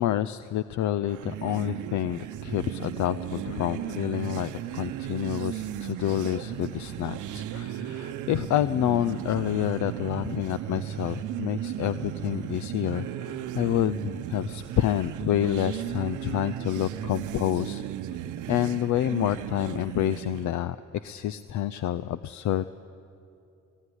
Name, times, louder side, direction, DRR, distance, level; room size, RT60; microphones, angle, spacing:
voice 1, 0.0-17.8 18.5-22.6, left 12 dB, 70° left, 14 dB, 0.6 m, -28 dB
sound 1, 1.0-20.5, right 11 dB, 80° right, 0.8 m, -35 dB
20.0 x 19.0 x 9.9 m, 2.6 s
cardioid pair, 90°, 30 cm